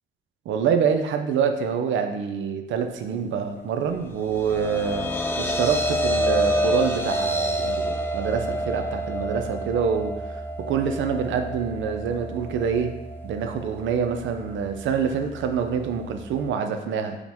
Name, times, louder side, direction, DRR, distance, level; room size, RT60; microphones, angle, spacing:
voice 1, 0.5-5.1 5.4-13.0 13.2-17.2, right 6 dB, 75° right, 6 dB, 0.5 m, -26 dB
sound 1, 4.1-16.5, equal, 10° left, 0.4 m, -29 dB
4.9 x 2.1 x 3.5 m, 0.96 s
cardioid pair, 90°, 20 cm